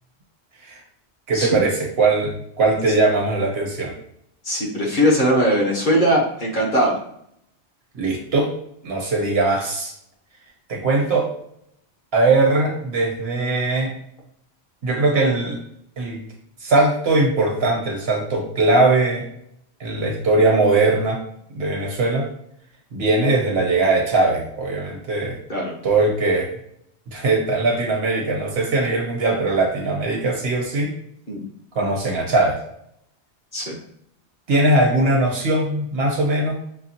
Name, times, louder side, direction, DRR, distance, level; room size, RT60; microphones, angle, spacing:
voice 1, 1.3-3.9 7.9-8.5 8.8-9.9 10.7-11.3 12.1-13.9 14.8-15.6 16.0-16.2 16.6-19.2 19.8-21.2 21.5-22.3 22.9-25.4 25.8-26.5 27.1-30.9 31.7-32.6 34.5-36.6, right 2 dB, 65° right, 0 dB, 1.2 m, -20 dB
voice 2, 4.4-7.0 25.5-25.7 31.3-31.4 33.5-33.8, equal, 45° left, -3 dB, 1.2 m, -20 dB
6.4 x 2.3 x 2.8 m, 0.70 s
omnidirectional pair, 1.1 m